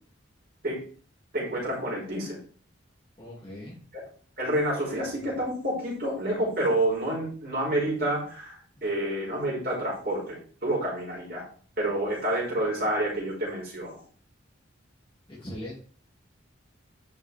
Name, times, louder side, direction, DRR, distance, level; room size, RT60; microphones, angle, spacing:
voice 1, 1.3-2.4 3.9-4.0 4.4-11.4 11.8-14.0, right 1 dB, 50° right, -4 dB, 4.7 m, -29 dB
voice 2, 3.2-3.8 15.3-15.8, left 1 dB, 25° left, -5 dB, 2.6 m, -40 dB
11.0 x 5.6 x 3.5 m, 0.43 s
head